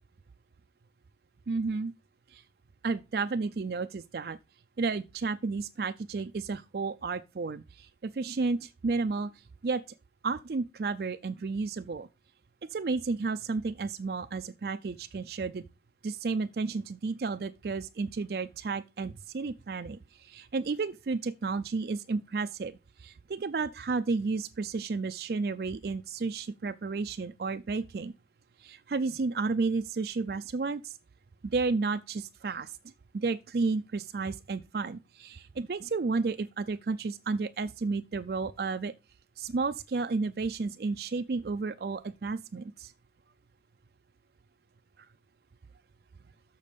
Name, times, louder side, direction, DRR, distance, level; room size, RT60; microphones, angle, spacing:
voice 1, 1.5-1.9 2.3-2.4 2.8-4.4 4.8-9.3 9.6-9.8 10.2-12.1 12.7-15.7 16.0-28.1 28.6-31.0 31.4-32.7 33.1-38.9 39.4-42.9 45.0-45.1, right 4 dB, 55° right, 0.4 m, -32 dB
6.7 x 6.4 x 5.2 m
head